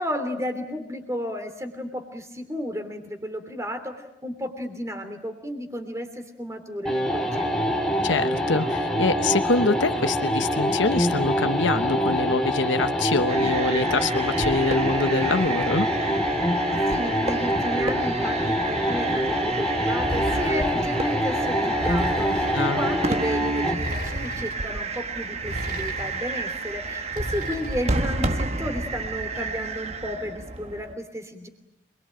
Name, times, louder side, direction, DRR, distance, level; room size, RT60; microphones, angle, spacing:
voice 1, 0.0-7.7 16.9-31.5, equal, 15° right, 8 dB, 3.0 m, -33 dB
sound 1, 6.8-23.9, equal, 5° left, 2.2 m, -25 dB
voice 2, 8.0-15.9 22.5-22.9, left 3 dB, 80° left, 9 dB, 1.0 m, -25 dB
sound 2, 13.3-31.0, right 3 dB, 35° right, 1.3 m, -31 dB
sound 3, 20.0-20.9 21.8-22.7 23.7-24.6 25.4-26.3 27.1-28.1, equal, 50° right, 6.0 m, -33 dB
27.5 x 22.5 x 8.9 m, 0.85 s
head